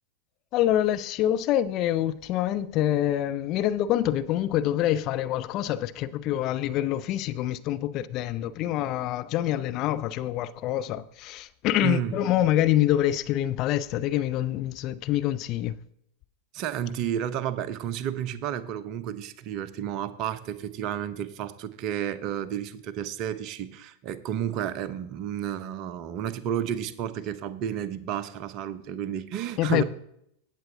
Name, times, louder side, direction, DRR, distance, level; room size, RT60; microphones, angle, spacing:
voice 1, 0.5-15.8 29.6-29.8, left 12 dB, 40° left, 0.4 m, -26 dB
voice 2, 11.8-12.1 16.5-29.8, right 10 dB, 40° right, 0.7 m, -31 dB
16.5 x 7.6 x 2.8 m
figure-of-eight pair, 90°, 0 cm